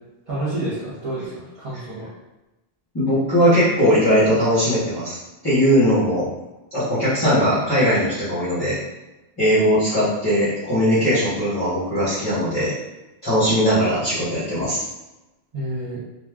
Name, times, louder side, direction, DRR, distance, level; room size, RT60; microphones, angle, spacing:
voice 1, 0.3-2.1 15.5-16.0, right 1 dB, 35° right, -9 dB, 0.7 m, -29 dB
voice 2, 2.9-5.2 5.4-6.2 6.7-8.7 9.4-12.7 13.2-14.8, equal, 25° left, -11 dB, 0.9 m, -19 dB
2.5 x 2.3 x 3.4 m, 1.0 s
omnidirectional pair, 1.0 m